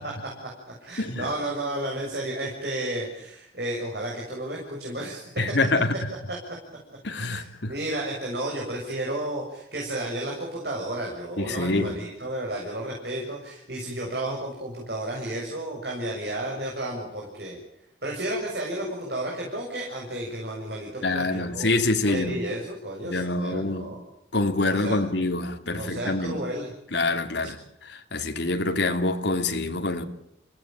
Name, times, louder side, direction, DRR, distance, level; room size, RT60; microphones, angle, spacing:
voice 1, 0.0-5.2 6.3-6.4 7.3-17.6 18.0-21.7 22.0-24.0 24.7-25.0 25.7-26.7 27.4-27.5, right 1 dB, 60° right, 6.9 m, -32 dB
voice 2, 1.0-1.3 5.4-5.9 7.0-7.7 11.4-11.9 21.0-22.4 23.0-23.9 24.3-26.4 26.9-27.6 27.8-30.0, left 2 dB, 70° left, 2.8 m, -26 dB
28.5 x 17.5 x 9.1 m
head